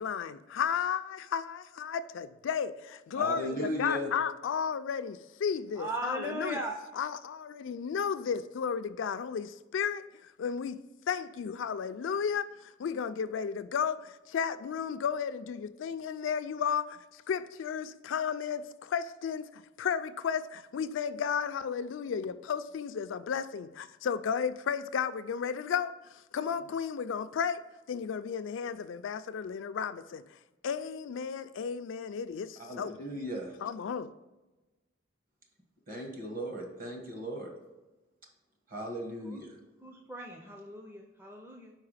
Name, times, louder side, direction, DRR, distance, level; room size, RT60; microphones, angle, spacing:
voice 1, 0.0-6.6 6.9-27.6 27.9-30.2 30.6-33.0 33.6-34.1, left 7 dB, 70° left, 0.3 m, -33 dB
voice 2, 3.1-4.1 32.7-33.5 35.9-37.5 38.7-39.5, equal, 45° right, 1.3 m, -36 dB
voice 3, 5.8-6.8 39.3-39.4 39.8-41.7, right 2 dB, 10° right, 0.5 m, -38 dB
4.8 x 4.7 x 4.9 m
head